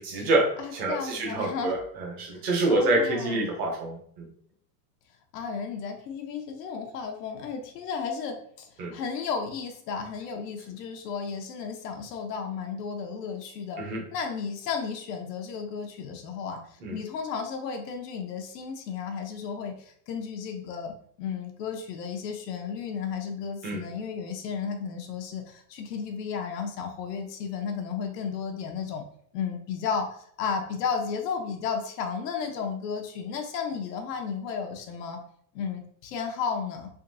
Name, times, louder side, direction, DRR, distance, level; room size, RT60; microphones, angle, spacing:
voice 1, 0.0-0.5 0.7-4.3 8.8-8.9 13.8-14.0 16.8-17.0 23.6-23.8, right 2 dB, 20° right, 0 dB, 0.5 m, -27 dB
voice 2, 0.6-1.8 2.3-3.5 5.3-13.8 14.1-20.9 21.2-29.0 29.3-35.2 35.5-36.9, left 6 dB, 80° left, 3 dB, 0.8 m, -33 dB
3.6 x 2.6 x 2.6 m, 0.63 s
supercardioid pair, 170°, 48 cm